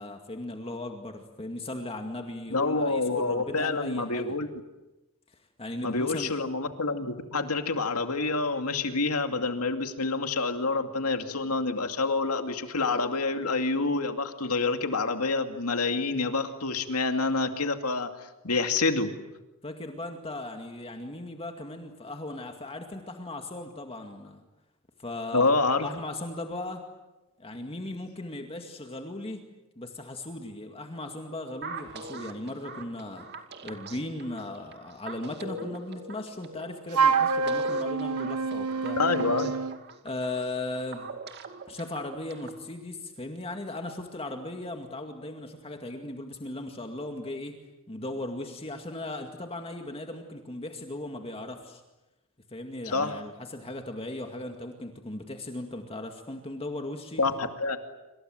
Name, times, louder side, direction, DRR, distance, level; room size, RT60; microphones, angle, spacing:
voice 1, 0.0-4.3 5.6-6.3 19.6-24.4 25.0-25.5 25.8-26.8 27.4-29.4 29.8-33.3 33.6-39.0 40.0-41.1 41.7-47.6 47.9-51.8 52.5-57.2, left 2 dB, 25° left, 4 dB, 2.1 m, -37 dB
voice 2, 2.5-4.5 5.8-18.1 18.4-19.1 25.3-25.9 39.0-39.5 52.9-53.2 57.2-57.8, left 3 dB, 80° left, 6 dB, 2.5 m, -27 dB
sound 1, 31.6-42.6, right 3 dB, 50° right, 2.4 m, -42 dB
Wind instrument woodwind instrument, 36.9-39.8, right 5 dB, 85° right, 1.4 m, -26 dB
27.5 x 26.5 x 7.9 m, 1.0 s
head